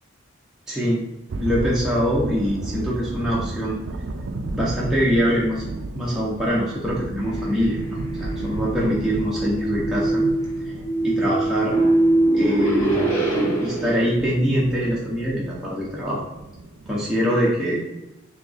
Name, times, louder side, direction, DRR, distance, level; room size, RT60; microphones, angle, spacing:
voice 1, 0.7-1.0 1.3-3.8 4.5-5.6 5.9-10.3 10.6-10.7 11.0-11.8 12.3-13.3 13.6-16.2 16.9-17.8, equal, ahead, -7 dB, 0.6 m, -24 dB
sound 1, 1.3-17.1, right 2 dB, 65° right, 0.3 m, -34 dB
sound 2, 7.2-14.0, right 2 dB, 85° left, 1.3 m, -23 dB
4.0 x 3.0 x 3.3 m, 0.96 s
head